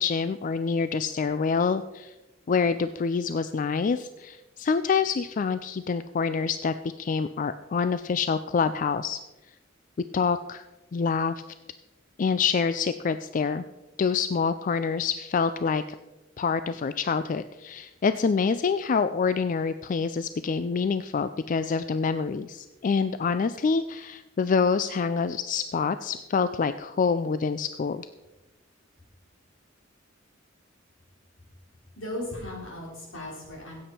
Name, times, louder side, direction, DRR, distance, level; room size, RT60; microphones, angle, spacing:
voice 1, 0.0-2.1 2.5-9.2 10.0-10.6 10.9-11.4 12.2-13.6 14.0-15.8 16.4-28.1, left 5 dB, 40° left, 12 dB, 0.3 m, -26 dB
voice 2, 32.0-33.8, left 1 dB, 75° left, -3 dB, 4.7 m, -36 dB
15.5 x 8.6 x 4.4 m, 1.1 s
head